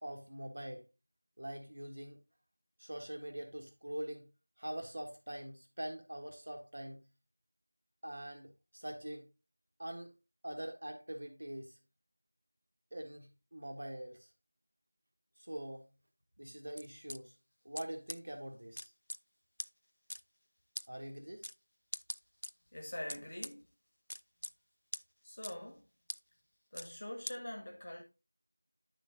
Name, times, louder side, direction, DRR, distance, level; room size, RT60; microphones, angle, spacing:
voice 1, 0.0-0.9 1.4-2.2 2.8-4.3 4.6-7.0 8.0-9.3 9.8-10.1 10.4-11.8 12.9-14.3 15.4-15.9 16.4-17.3 17.6-18.9 20.9-21.4, right 1 dB, 40° right, 1.4 m, -44 dB
sound 1, 16.8-17.2 17.7-17.8 18.1-18.2 18.8-19.2 19.6-19.7 20.1-20.2 20.7-20.9 21.4-21.5 21.9-22.5 23.1-23.5 24.1-24.5 24.9-25.0 25.4-25.5 26.1-26.2 26.8-26.9 27.3-27.4, left 1 dB, 60° left, 0.3 m, -41 dB
voice 2, 22.7-23.7 25.2-25.9 26.7-28.0, left 1 dB, 30° left, 1.4 m, -44 dB
9.5 x 3.7 x 3.8 m
figure-of-eight pair, 175°, 0 cm